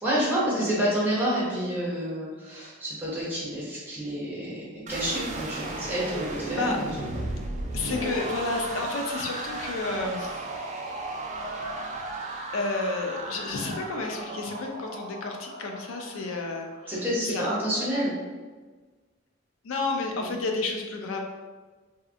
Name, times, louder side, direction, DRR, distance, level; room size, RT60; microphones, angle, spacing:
voice 1, 0.0-6.7 7.1-7.2 16.9-18.1 20.2-20.3, equal, 10° right, -8 dB, 0.9 m, -28 dB
sound 1, 4.9-16.9, right 2 dB, 35° right, 0.3 m, -35 dB
voice 2, 7.7-10.4 12.5-16.7 17.3-17.6 19.6-21.2, left 3 dB, 85° left, 3 dB, 0.4 m, -31 dB
2.7 x 2.4 x 2.4 m, 1.3 s
head